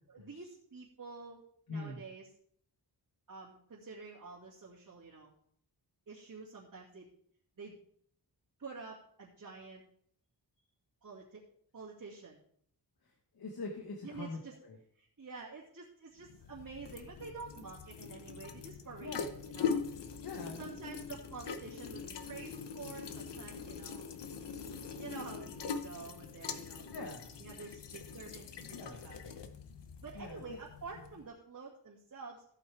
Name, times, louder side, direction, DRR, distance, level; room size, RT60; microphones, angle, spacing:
voice 1, 0.1-2.3 3.3-5.3 6.1-7.1 7.6-7.8 8.6-9.8 11.0-11.4 11.7-12.4 14.0-14.6 14.9-19.8 20.6-24.1 25.0-27.1 27.4-29.4 30.0-32.5, right 4 dB, 50° right, -8 dB, 2.4 m, -48 dB
voice 2, 1.7-2.0 13.3-14.8 19.0-19.3 20.2-20.7 26.9-27.2 28.7-29.0 30.1-30.6, left 3 dB, 60° left, 1 dB, 1.6 m, -43 dB
sound 1, 16.2-31.3, left 6 dB, 85° left, 1.0 m, -42 dB
15.0 x 8.4 x 3.5 m, 0.64 s
wide cardioid pair, 140°, 41 cm